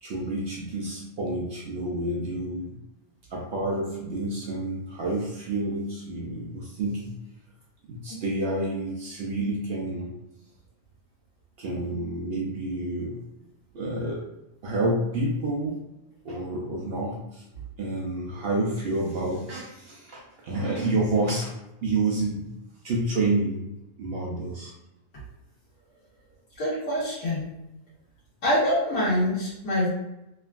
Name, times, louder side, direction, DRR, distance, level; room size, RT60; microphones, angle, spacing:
voice 1, 0.0-2.8 3.3-7.1 7.9-10.1 11.6-13.2 13.7-14.2 14.6-15.8 16.2-17.4 17.8-21.5 21.8-22.5 22.8-23.7 24.0-24.7, right 2 dB, 65° right, -3 dB, 0.6 m, -29 dB
voice 2, 26.6-27.5 28.4-29.9, left 1 dB, 80° left, -10 dB, 1.4 m, -25 dB
3.3 x 2.2 x 2.3 m, 0.90 s
omnidirectional pair, 1.5 m